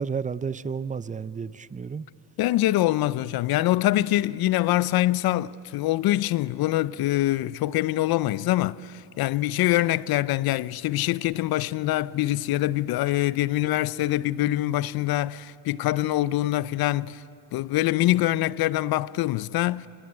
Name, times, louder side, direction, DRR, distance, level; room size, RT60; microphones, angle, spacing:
voice 1, 0.0-2.1, right 6 dB, 20° right, 0.6 m, -31 dB
voice 2, 2.4-17.2 17.5-19.9, left 15 dB, 65° left, 0.6 m, -24 dB
25.0 x 21.0 x 8.8 m
supercardioid pair, 85°, 40 cm